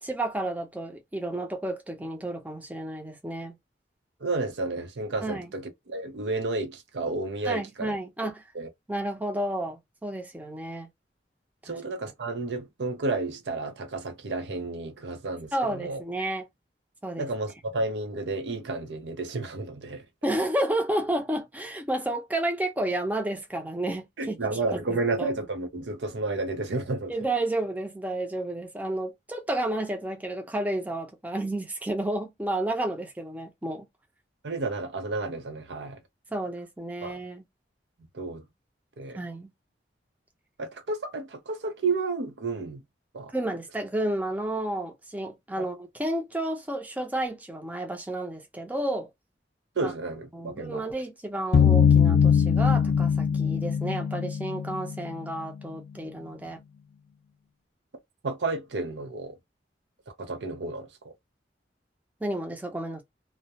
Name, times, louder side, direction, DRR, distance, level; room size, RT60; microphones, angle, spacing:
voice 1, 0.0-3.6 5.2-5.5 7.5-8.4 8.9-10.9 15.5-16.5 17.0-17.3 20.2-24.4 24.7-25.3 27.1-33.9 36.3-37.4 39.2-39.5 43.3-49.1 49.8-49.9 50.3-56.6 62.2-63.0, right 1 dB, 10° right, 0.5 m, -31 dB
voice 2, 4.2-8.0 8.2-8.7 11.6-16.0 17.2-20.0 24.2-27.1 34.4-36.0 37.0-37.2 38.1-38.4 39.0-39.2 40.6-42.8 43.1-43.3 45.6-45.7 49.8-50.8 58.2-59.4 60.2-61.1, right 3 dB, 85° right, 0.6 m, -31 dB
sound 1, 51.5-55.3, left 7 dB, 60° left, 0.4 m, -21 dB
2.3 x 2.1 x 2.7 m
head